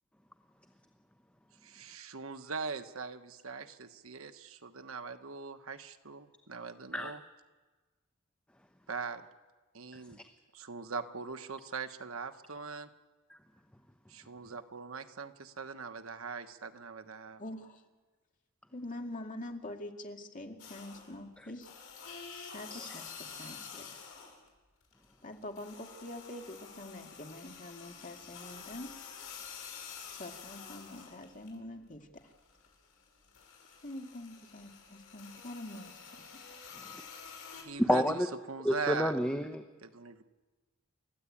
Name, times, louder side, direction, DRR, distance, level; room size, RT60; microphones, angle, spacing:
voice 1, 1.6-7.2 8.9-9.2 9.7-10.2 10.5-12.9 14.1-17.4 37.5-38.2 38.5-39.2 39.8-40.2, right 4 dB, 70° right, 9 dB, 1.2 m, -41 dB
voice 2, 17.4-17.8 18.7-21.7 22.3-23.0 23.3-23.9 25.2-28.9 30.1-32.1 33.8-35.9 36.3-36.4, left 1 dB, 40° left, 3 dB, 2.3 m, -45 dB
sound 1, 20.6-21.2 21.6-24.5 24.8-31.6 31.9-37.6, left 6 dB, 70° left, 6.4 m, -49 dB
voice 3, 37.8-38.1 38.6-39.6, equal, 5° left, 6 dB, 0.9 m, -29 dB
29.0 x 14.0 x 8.7 m, 1.3 s
head